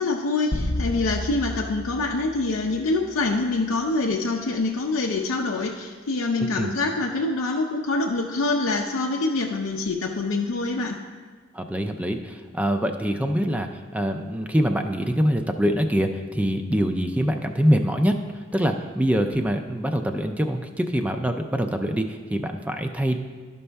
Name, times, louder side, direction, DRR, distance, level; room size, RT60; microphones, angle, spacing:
voice 1, 0.0-11.0, left 3 dB, 85° left, 0 dB, 0.5 m, -25 dB
sound 1, 0.5-3.1, left 1 dB, 40° left, 0.7 m, -31 dB
voice 2, 6.4-6.7 11.5-23.2, equal, 5° right, 5 dB, 0.4 m, -24 dB
12.0 x 5.4 x 3.4 m, 1.5 s
head